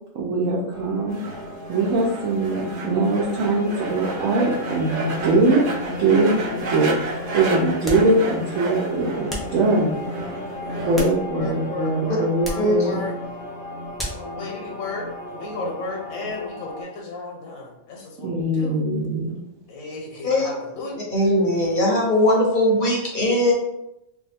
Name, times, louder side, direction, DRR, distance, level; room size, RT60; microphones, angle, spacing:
voice 1, 0.1-1.2 1.7-5.6 6.0-9.9 10.9-13.0 18.2-19.3, right 2 dB, 75° right, -5 dB, 1.0 m, -22 dB
sound 1, 0.7-16.8, left 1 dB, 40° right, 1.1 m, -35 dB
sound 2, 1.1-11.0, right 2 dB, 60° right, 0.6 m, -31 dB
sound 3, 7.8-8.2 9.3-9.6 10.7-11.6 12.4-12.7 14.0-14.3, equal, ahead, 0.3 m, -33 dB
voice 2, 10.6-13.1 14.2-18.8 19.7-21.0, left 3 dB, 85° left, 0 dB, 1.1 m, -34 dB
voice 3, 12.5-12.9 20.2-20.5 21.1-23.5, left 1 dB, 50° left, -2 dB, 0.7 m, -20 dB
2.6 x 2.3 x 4.1 m, 0.86 s
omnidirectional pair, 1.4 m